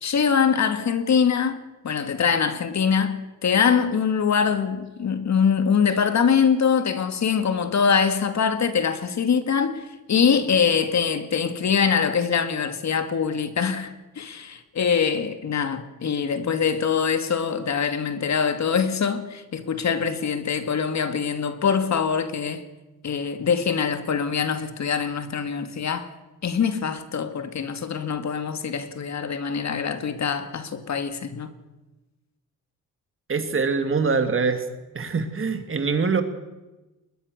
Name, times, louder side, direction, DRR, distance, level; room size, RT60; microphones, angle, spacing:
voice 1, 0.0-22.6 23.0-26.1 26.4-31.5, left 6 dB, 50° left, 2.3 m, -23 dB
voice 2, 33.3-34.6 34.9-36.2, right 4 dB, 35° right, 2.8 m, -23 dB
21.0 x 21.0 x 6.7 m
cardioid pair, 95°, 35 cm